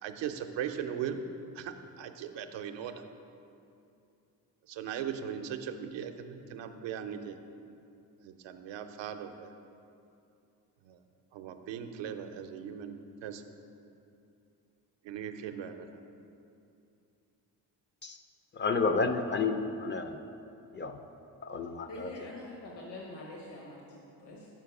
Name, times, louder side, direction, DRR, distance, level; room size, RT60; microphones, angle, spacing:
voice 1, 0.0-1.2 1.5-3.0 4.7-7.4 8.2-9.5 10.8-11.0 11.3-13.4 15.0-15.9, right 8 dB, 80° right, 7 dB, 0.6 m, -39 dB
voice 2, 18.5-20.2 20.7-21.0 21.4-22.1, left 4 dB, 25° left, 7 dB, 0.4 m, -31 dB
voice 3, 21.9-24.5, left 1 dB, 65° left, -2 dB, 1.2 m, -45 dB
5.8 x 4.6 x 5.9 m, 2.6 s
cardioid pair, 70°, 44 cm